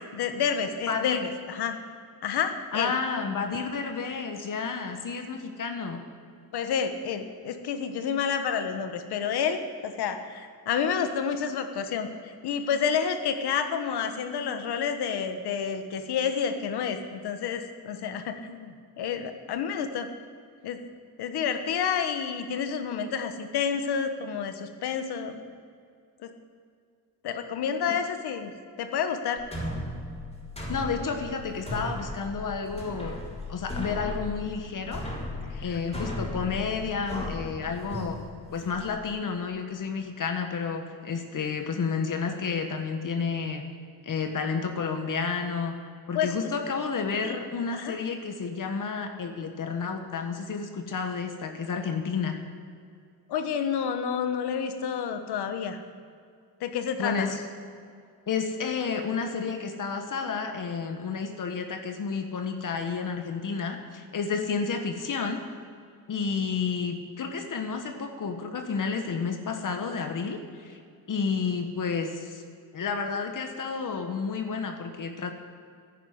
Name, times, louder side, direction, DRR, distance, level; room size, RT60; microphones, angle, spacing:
voice 1, 0.1-1.2 1.5-1.8 2.2-2.9 6.5-20.1 20.6-20.8 21.2-25.5 26.2-26.3 27.2-28.5 28.8-29.4 35.5-35.8 46.1-46.4 47.2-47.4 47.7-48.0 53.3-55.8 56.6-57.3, left 7 dB, 85° left, 8 dB, 1.3 m, -29 dB
voice 2, 0.9-1.3 2.7-6.0 27.9-28.0 30.7-33.2 33.5-35.0 35.6-38.2 38.5-43.6 44.0-45.7 46.1-52.4 57.0-57.4 58.3-65.4 66.1-70.8 71.1-72.4 72.7-75.3, left 5 dB, 55° left, 5 dB, 1.4 m, -31 dB
sound 1, 29.4-38.9, left 1 dB, 15° left, 4.2 m, -36 dB
11.0 x 10.5 x 8.0 m, 2.3 s
cardioid pair, 90°, 38 cm